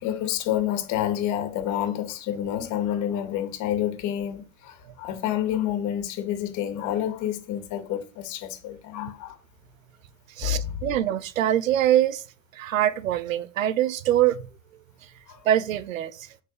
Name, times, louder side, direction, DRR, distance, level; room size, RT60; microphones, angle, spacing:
voice 1, 0.0-9.4 10.4-10.8 15.3-15.5, left 11 dB, 45° left, 2.3 m, -28 dB
voice 2, 10.4-12.2 12.5-14.5 15.4-16.3, right 12 dB, 80° right, 0.9 m, -24 dB
8.3 x 4.6 x 6.8 m
hypercardioid pair, 110°, 39 cm